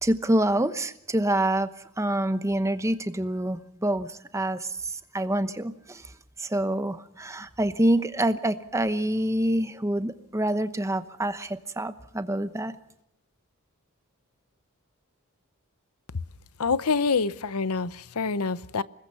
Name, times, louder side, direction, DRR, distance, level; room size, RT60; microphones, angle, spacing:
voice 1, 0.0-1.7 2.0-6.1 6.4-12.7, right 1 dB, 15° right, 0.9 m, -26 dB
voice 2, 16.6-18.8, left 4 dB, 80° left, 0.8 m, -26 dB
26.0 x 21.0 x 5.6 m
head